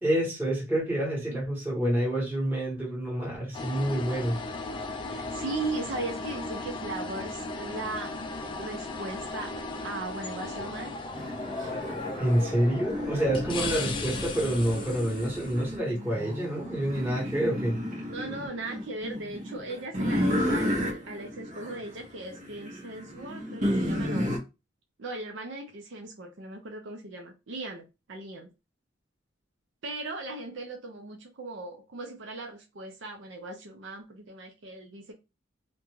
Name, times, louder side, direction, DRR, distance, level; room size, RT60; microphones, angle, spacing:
voice 1, 0.0-4.4 12.2-17.8, right 1 dB, 10° right, 1.2 m, -28 dB
sound 1, 3.5-15.8, left 3 dB, 25° left, 0.3 m, -36 dB
voice 2, 5.1-8.1 8.6-9.5 9.8-11.0 18.0-24.3 25.0-28.5 29.8-35.1, right 2 dB, 65° right, 0.5 m, -38 dB
sound 2, 11.1-24.4, equal, 40° right, 0.7 m, -33 dB
2.5 x 2.2 x 3.0 m
head